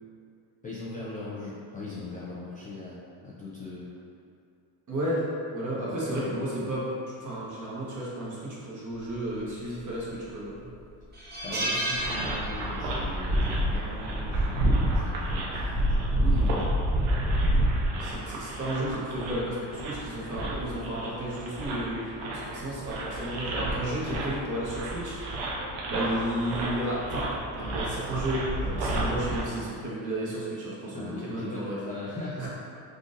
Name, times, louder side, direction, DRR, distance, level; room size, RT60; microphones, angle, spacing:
voice 1, 0.6-3.9 6.2-6.3 11.4-16.0 30.9-32.5, left 3 dB, 20° left, -8 dB, 0.3 m, -40 dB
voice 2, 4.9-5.3 5.5-10.7 11.5-11.7 15.5-16.6 17.9-25.5 25.9-31.8 32.4-32.5, right 1 dB, 40° right, -7 dB, 1.1 m, -33 dB
sound 1, 9.7-10.3 10.6-10.7 11.1-13.0 13.2-13.5 14.7-15.0, right 1 dB, 20° right, 0.6 m, -32 dB
sound 2, 11.9-29.4, right 1 dB, 65° right, 0.7 m, -29 dB
3.7 x 2.6 x 2.5 m, 2.4 s
cardioid pair, 100°, 48 cm